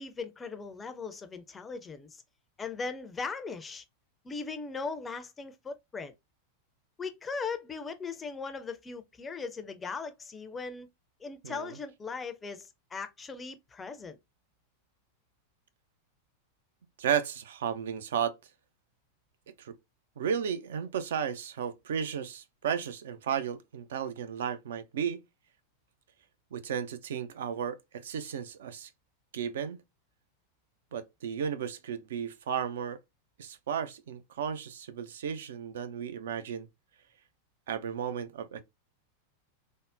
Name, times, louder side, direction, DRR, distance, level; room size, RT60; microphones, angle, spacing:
voice 1, 0.0-2.2 2.6-3.8 4.2-6.1 7.0-10.9 11.2-14.2, left 4 dB, 15° left, 0.4 m, -39 dB
voice 2, 17.0-18.3 19.6-19.7 20.2-25.2 26.5-28.9 29.3-29.8 30.9-33.0 33.4-36.7 37.7-38.6, right 8 dB, 60° right, 0.4 m, -34 dB
3.5 x 2.0 x 2.4 m
figure-of-eight pair, 90°, 0 cm